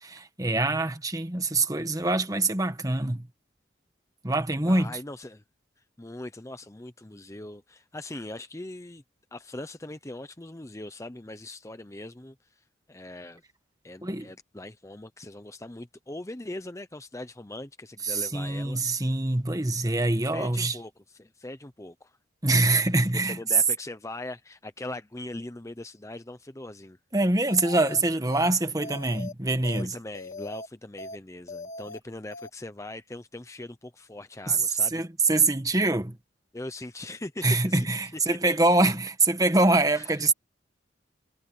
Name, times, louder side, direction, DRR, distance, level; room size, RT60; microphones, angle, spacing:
voice 1, 0.0-3.3 4.2-5.0 14.0-14.3 18.0-20.7 22.4-23.4 27.1-30.0 34.5-34.6 34.9-36.2 37.4-40.3, right 2 dB, 20° right, 1.5 m, -24 dB
voice 2, 4.7-5.4 6.0-9.0 9.3-13.4 13.8-18.8 20.2-22.2 23.1-27.0 29.8-35.0 36.5-37.9 38.3-38.5 39.9-40.2, left 1 dB, 15° left, 0.8 m, -41 dB
sound 1, 27.5-28.0 28.3-28.5 28.8-29.3 29.6-29.8 30.1-30.7 31.0-31.2 31.5-32.0 32.3-32.5, left 2 dB, 40° left, 1.7 m, -40 dB
head